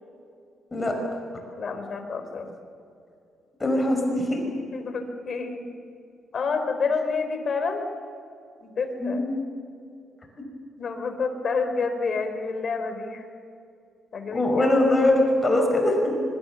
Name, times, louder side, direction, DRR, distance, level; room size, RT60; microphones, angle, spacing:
voice 1, 1.6-2.5 4.7-5.7 6.3-7.8 8.6-9.3 10.8-13.2 14.1-15.1, left 4 dB, 45° left, 6 dB, 4.1 m, -29 dB
voice 2, 3.6-4.4 9.0-9.4 14.3-16.1, left 1 dB, 20° left, 2 dB, 5.5 m, -22 dB
26.0 x 24.0 x 7.1 m, 2.5 s
cardioid pair, 130°, 0 cm